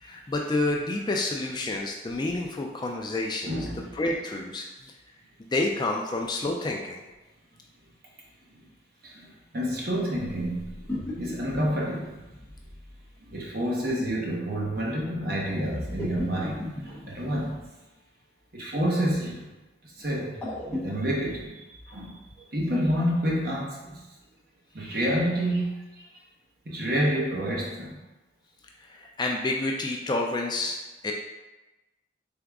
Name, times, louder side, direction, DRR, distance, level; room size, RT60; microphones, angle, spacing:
voice 1, 0.0-3.6 4.0-4.9 5.5-7.0 28.9-30.8 31.0-31.1, left 2 dB, 20° left, 1 dB, 0.3 m, -29 dB
voice 2, 3.4-3.9 9.0-10.9 11.2-12.2 13.3-17.6 18.5-19.5 20.0-22.2 22.5-24.0 24.7-26.1 26.7-28.0, equal, 50° right, -3 dB, 1.0 m, -29 dB
sound 1, 10.2-13.0 15.6-17.6 20.0-21.4, left 1 dB, 5° left, 0.7 m, -37 dB
3.9 x 3.6 x 3.5 m, 1.1 s
head